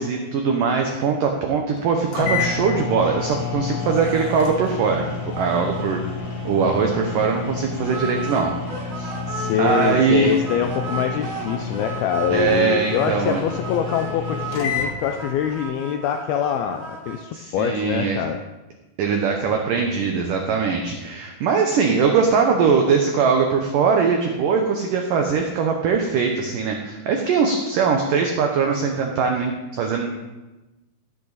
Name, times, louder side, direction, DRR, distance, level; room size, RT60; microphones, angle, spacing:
voice 1, 0.0-6.0 6.4-8.5 8.9-9.1 9.6-10.3 12.3-13.4 17.3-18.2 19.0-30.1, right 5 dB, 75° right, 2 dB, 2.0 m, -21 dB
sound 1, 1.8-1.9 2.1-14.9, left 5 dB, 70° left, 4.9 m, -30 dB
sound 2, 5.3-5.8 6.1-6.2 6.6-6.7 7.8-10.0 10.2-17.2, right 4 dB, 55° right, 1.4 m, -34 dB
voice 2, 9.3-18.4, left 9 dB, 90° left, 5 dB, 2.1 m, -24 dB
15.0 x 12.0 x 4.1 m, 1.1 s
omnidirectional pair, 5.2 m